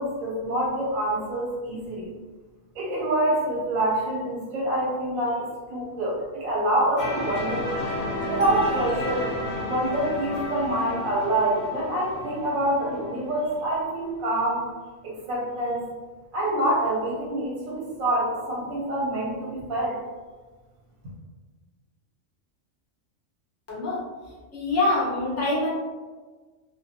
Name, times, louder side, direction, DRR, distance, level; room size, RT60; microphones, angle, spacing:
voice 1, 0.0-2.1 2.7-7.7 8.3-9.3 9.7-14.6 15.0-15.9 16.3-20.0, right 1 dB, 80° right, -5 dB, 1.1 m, -26 dB
sound 1, 7.0-13.7, left 1 dB, 55° left, 0.8 m, -32 dB
voice 2, 23.7-24.0 24.5-25.7, left 2 dB, 20° left, -7 dB, 0.4 m, -24 dB
2.3 x 2.1 x 2.7 m, 1.3 s
omnidirectional pair, 1.4 m